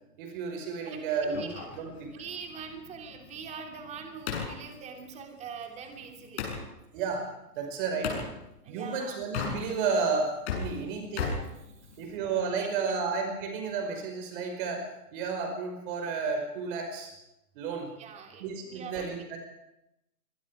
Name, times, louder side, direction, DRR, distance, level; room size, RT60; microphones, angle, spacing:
voice 1, 0.2-2.1 6.9-7.3 7.6-8.3 8.7-11.3 12.0-14.8 15.1-17.1 17.6-17.9 18.4-19.4, right 5 dB, 35° right, 3 dB, 5.3 m, -32 dB
voice 2, 0.8-1.8 2.1-6.4 8.6-9.2 11.8-11.9 12.8-13.0 18.0-19.0, right 6 dB, 15° right, 3 dB, 3.0 m, -43 dB
sound 1, 1.3-6.6 8.0-8.3 9.2-10.0 10.3-12.2, left 6 dB, 40° left, 7.4 m, -37 dB
24.5 x 22.5 x 4.9 m, 0.88 s
hypercardioid pair, 145°, 48 cm